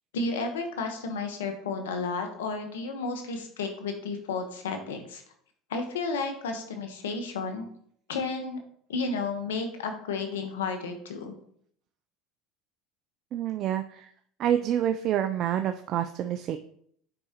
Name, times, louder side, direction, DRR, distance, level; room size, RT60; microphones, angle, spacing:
voice 1, 0.1-5.2 5.7-7.7 8.1-8.6 8.9-11.3, left 4 dB, 90° left, 6 dB, 1.0 m, -32 dB
voice 2, 13.3-14.1 14.4-16.6, right 10 dB, 55° right, 8 dB, 0.4 m, -27 dB
7.8 x 4.8 x 2.9 m, 0.65 s
hypercardioid pair, 85°, 0 cm